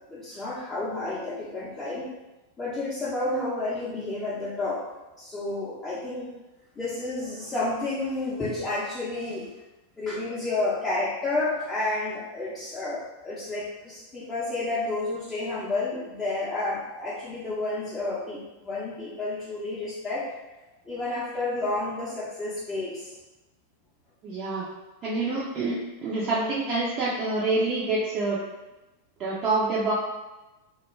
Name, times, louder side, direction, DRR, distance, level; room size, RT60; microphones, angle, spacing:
voice 1, 0.1-2.1 2.6-4.9 5.2-6.3 6.8-9.5 10.0-20.3 20.8-23.1, left 2 dB, 15° left, -9 dB, 0.6 m, -30 dB
voice 2, 24.2-24.7 25.0-28.4 29.2-29.9, right 3 dB, 35° right, -7 dB, 0.5 m, -27 dB
2.2 x 2.1 x 3.1 m, 1.1 s
figure-of-eight pair, 90°, 0 cm